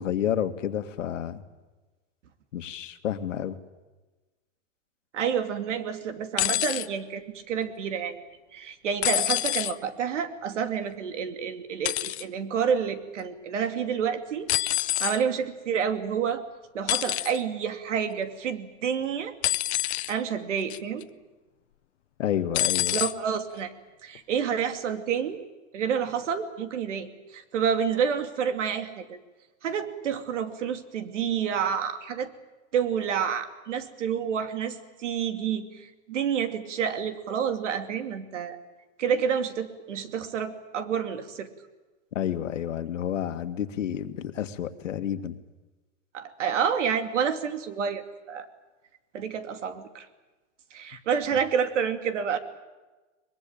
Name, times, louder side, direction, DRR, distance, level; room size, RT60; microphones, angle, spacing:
voice 1, 0.0-1.4 2.5-3.6 22.2-23.0 42.2-45.4, left 10 dB, 85° left, 9 dB, 2.0 m, -30 dB
voice 2, 5.1-8.2 8.5-14.5 15.0-16.4 16.7-19.3 20.1-21.1 22.9-23.7 24.0-25.4 25.7-29.2 29.6-32.3 32.7-38.6 39.0-41.5 46.1-48.5 49.1-50.1 50.7-52.4, right 7 dB, 75° right, 9 dB, 2.7 m, -29 dB
sound 1, 6.4-6.9 9.0-9.7 11.8-12.2 14.5-15.2 16.9-17.4 19.4-20.1 20.7-21.0 22.5-23.1 24.1-24.2, left 14 dB, 60° left, 0.8 m, -26 dB
23.0 x 22.0 x 9.0 m, 1.2 s
supercardioid pair, 165°, 37 cm